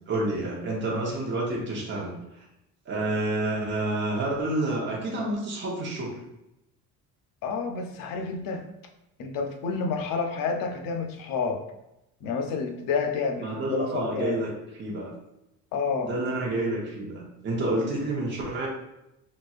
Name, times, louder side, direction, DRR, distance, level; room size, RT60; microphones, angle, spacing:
voice 1, 0.1-2.4 2.9-6.2 13.4-14.5 14.8-15.1 16.0-18.7, right 2 dB, 35° right, -3 dB, 0.9 m, -29 dB
voice 2, 7.4-8.6 9.2-11.6 12.2-14.4 15.7-16.1, left 5 dB, 80° left, 4 dB, 0.6 m, -29 dB
4.1 x 2.5 x 2.4 m, 0.88 s
cardioid pair, 160°, 33 cm